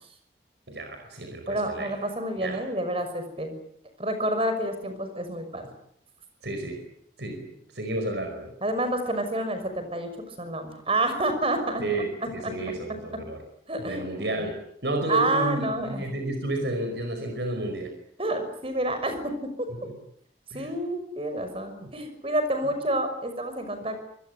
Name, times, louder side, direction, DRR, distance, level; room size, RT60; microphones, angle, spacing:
voice 1, 0.7-1.9 2.4-2.6 6.4-6.8 7.2-7.4 7.7-8.5 11.8-13.4 13.8-14.6 14.8-17.9 19.8-19.9 20.5-20.7 21.8-21.9, right 1 dB, 80° right, 5 dB, 5.1 m, -31 dB
voice 2, 1.5-3.6 4.0-5.7 8.6-11.8 12.4-12.5 13.7-14.0 14.3-14.5 15.1-16.0 18.2-19.7 20.5-24.0, right 1 dB, 35° right, 8 dB, 6.0 m, -28 dB
25.5 x 21.0 x 9.5 m, 0.71 s
head